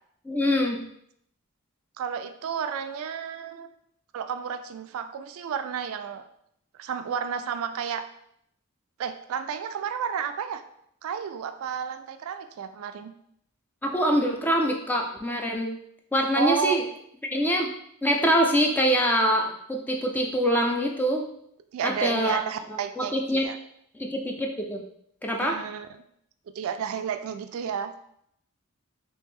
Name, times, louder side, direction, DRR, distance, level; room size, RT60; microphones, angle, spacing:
voice 1, 0.2-0.8 13.8-15.7 16.1-16.8 17.3-17.7 18.0-21.3 21.8-22.4 22.7-23.4 23.9-24.8 25.2-25.6, equal, 10° left, 1 dB, 0.3 m, -24 dB
voice 2, 2.0-3.7 4.1-6.2 6.8-8.0 9.0-10.6 11.0-13.1 16.4-16.8 21.7-23.6 25.4-26.0 26.6-27.9, right 7 dB, 70° right, 9 dB, 0.3 m, -31 dB
3.5 x 2.8 x 3.1 m, 0.71 s
head